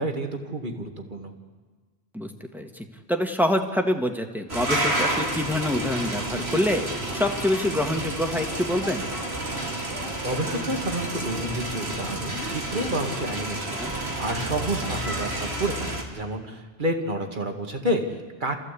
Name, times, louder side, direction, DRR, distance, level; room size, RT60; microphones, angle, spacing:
voice 1, 0.0-1.3 10.2-18.6, right 1 dB, 50° right, 4 dB, 2.1 m, -30 dB
voice 2, 2.1-6.8 7.1-9.1 13.7-13.9, left 1 dB, ahead, 3 dB, 1.6 m, -26 dB
sound 1, 4.5-11.4 11.7-13.7 14.1-16.2, left 2 dB, 60° left, 2.4 m, -40 dB
sound 2, 4.5-16.0, right 1 dB, 90° right, 2.8 m, -30 dB
28.5 x 14.5 x 8.4 m, 1.4 s
omnidirectional pair, 1.1 m